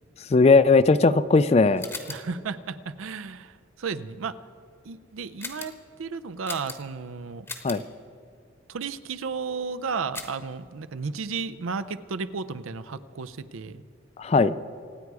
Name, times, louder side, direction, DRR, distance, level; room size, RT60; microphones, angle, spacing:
voice 1, 0.3-1.8 7.6-7.8 14.2-14.5, left 3 dB, 30° left, 15 dB, 0.3 m, -18 dB
sound 1, 1.8-2.4 5.4-5.8 6.4-7.0 7.5-7.9 10.1-10.5, left 3 dB, 10° left, 0.9 m, -39 dB
voice 2, 2.1-4.4 4.8-7.5 8.7-13.8, right 5 dB, 80° right, 13 dB, 0.5 m, -33 dB
25.5 x 9.4 x 4.8 m, 2.3 s
head